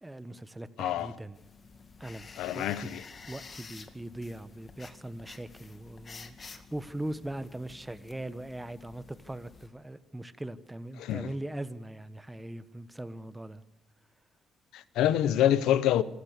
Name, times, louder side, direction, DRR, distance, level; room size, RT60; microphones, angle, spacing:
voice 1, 0.0-1.4 2.0-2.3 2.5-2.9 3.3-13.6, right 1 dB, 10° right, 1.3 m, -40 dB
voice 2, 0.8-1.1 2.4-3.0 11.0-11.3 14.7-16.0, left 11 dB, 90° left, 1.0 m, -26 dB
sound 1, 1.3-9.7, left 4 dB, 35° left, 2.2 m, -50 dB
27.0 x 15.5 x 6.8 m
cardioid pair, 90°, 0 cm